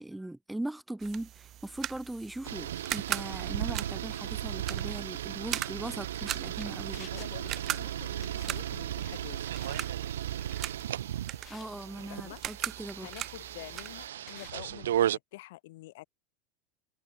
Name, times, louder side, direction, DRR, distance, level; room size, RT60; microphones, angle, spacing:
voice 1, 0.0-7.1 11.5-13.1, right 1 dB, 5° right, 1.0 m, -39 dB
sound 1, 1.0-14.1, right 12 dB, 35° right, 0.8 m, -40 dB
sound 2, 2.3-14.5, left 9 dB, 30° left, 7.4 m, -58 dB
sound 3, 2.4-15.2, right 11 dB, 65° right, 0.4 m, -35 dB
voice 2, 7.1-9.4 12.1-12.4 13.0-16.0, left 19 dB, 55° left, 1.3 m, -47 dB
figure-of-eight pair, 80°, 0 cm